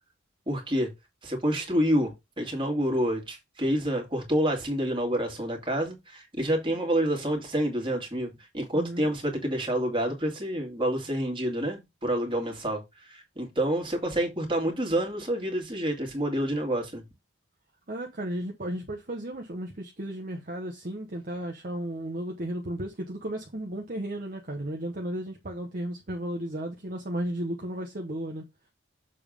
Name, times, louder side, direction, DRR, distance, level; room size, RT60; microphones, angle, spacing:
voice 1, 0.5-0.9 1.2-17.0, equal, 25° right, 2.3 m, -28 dB
voice 2, 8.7-9.2 17.9-28.4, right 1 dB, 40° right, 1.0 m, -34 dB
7.0 x 3.5 x 5.1 m
head